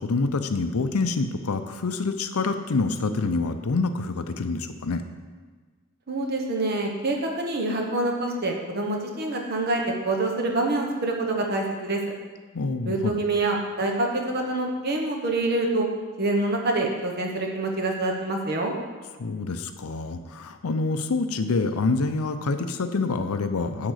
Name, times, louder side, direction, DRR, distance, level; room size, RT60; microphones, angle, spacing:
voice 1, 0.0-5.0 12.5-13.2 19.2-23.9, left 3 dB, 90° left, 9 dB, 0.6 m, -26 dB
voice 2, 6.1-12.0 12.8-15.9 16.2-18.7, right 2 dB, 45° right, 1 dB, 1.2 m, -26 dB
10.0 x 3.8 x 6.4 m, 1.4 s
head